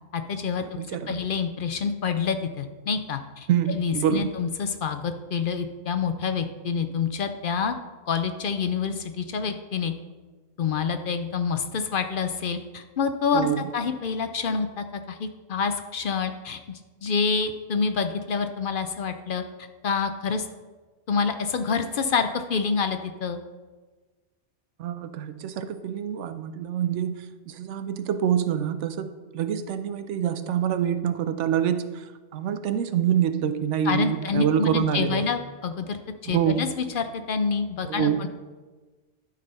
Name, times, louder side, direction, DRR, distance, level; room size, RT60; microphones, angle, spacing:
voice 1, 0.1-7.7 8.1-9.9 10.6-19.4 19.8-20.5 21.1-23.4 33.8-38.3, left 5 dB, 60° left, 8 dB, 0.6 m, -27 dB
voice 2, 0.8-1.2 3.5-4.3 13.3-13.7 24.8-35.3 36.3-36.6 37.9-38.3, right 9 dB, 85° right, 10 dB, 1.0 m, -26 dB
11.5 x 4.0 x 5.4 m, 1.3 s
omnidirectional pair, 1.2 m